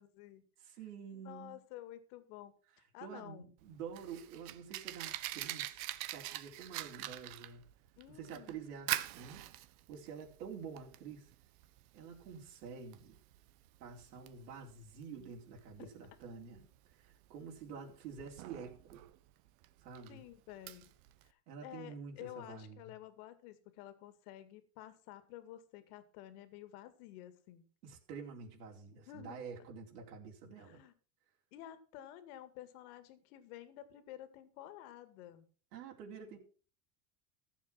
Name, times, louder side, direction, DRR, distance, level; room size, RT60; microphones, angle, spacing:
voice 1, 0.0-0.4 1.1-3.4 8.0-8.6 15.8-15.9 17.7-18.0 20.1-20.9 21.2-27.6 29.1-29.4 30.6-30.9 31.5-35.5, left 12 dB, 70° left, 2.2 m, -52 dB
voice 2, 0.6-1.6 3.0-5.8 6.0-7.7 8.1-9.4 9.9-11.3 11.9-13.2 13.8-19.0 19.8-20.2 21.5-22.9 27.8-30.8 35.7-36.4, right 6 dB, 90° right, 4.2 m, -48 dB
Fire, 3.6-21.3, right 15 dB, 65° right, 1.3 m, -45 dB
14.5 x 7.4 x 5.9 m
supercardioid pair, 135°, 46 cm